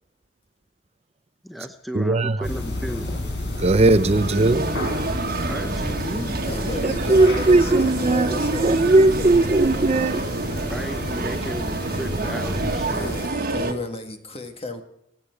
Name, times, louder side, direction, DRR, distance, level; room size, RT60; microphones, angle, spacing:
voice 1, 1.4-3.1 4.1-4.2 5.4-7.1 10.7-13.1, equal, ahead, 0.8 m, -35 dB
voice 2, 1.9-2.4 3.6-4.7 6.8-10.2, right 2 dB, 35° right, 0.6 m, -18 dB
sound 1, 2.4-13.3, left 1 dB, 75° left, 4.7 m, -31 dB
sound 2, 3.1-3.2 3.7-3.9 4.4-4.6 5.9-6.1 6.5-6.7 7.1-7.4 7.7-7.9 8.4-8.5 9.8-10.4 10.7-10.9 11.4-11.7 12.3-12.5 13.0-13.2, equal, 50° left, 6.7 m, -38 dB
sound 3, 3.9-13.7, right 2 dB, 55° right, 1.5 m, -28 dB
voice 3, 6.4-9.9 12.9-14.8, left 2 dB, 35° left, 1.7 m, -34 dB
26.0 x 8.9 x 4.6 m
head